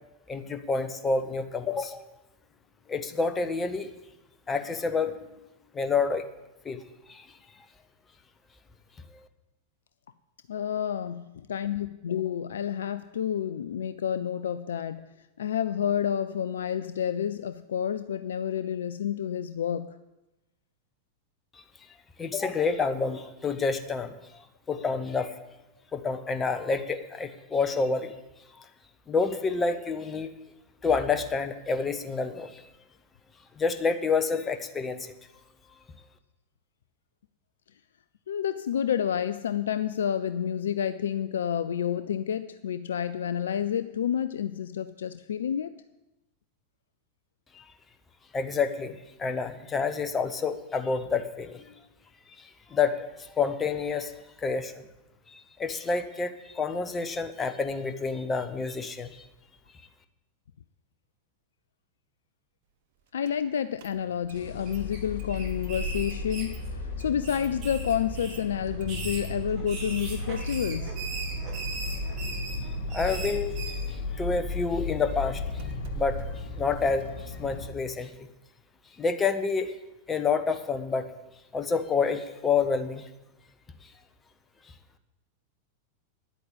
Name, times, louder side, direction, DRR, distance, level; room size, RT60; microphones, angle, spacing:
voice 1, 0.3-2.0 2.9-3.9 4.5-5.3 5.7-6.2 6.6-6.8 7.1-7.3 21.6-21.7 22.2-24.1 24.7-25.3 25.9-28.1 28.6-28.7 29.1-30.3 30.8-32.6 33.6-35.1 47.5-47.6 48.3-51.7 52.4-54.1 54.4-54.8 55.3-59.2 72.9-73.5 74.1-76.2 76.6-77.0 77.4-78.1 79.0-79.7 80.1-81.1 81.5-83.1, left 4 dB, 20° left, 8 dB, 1.1 m, -28 dB
voice 2, 10.5-20.0 38.3-45.8 63.1-71.0, left 9 dB, 65° left, 13 dB, 0.4 m, -29 dB
Engine starting, 63.3-63.4 63.8-64.4 64.7-64.8 65.2-77.1, right 3 dB, 50° right, 1.1 m, -38 dB
sound 1, 64.2-65.0 65.3-66.9 67.2-68.4 68.8-73.9, right 3 dB, 35° right, 4.8 m, -39 dB
sound 2, 64.3-77.7, left 7 dB, 45° left, 1.7 m, -37 dB
10.0 x 8.4 x 8.4 m, 1.0 s
figure-of-eight pair, 90°, 0 cm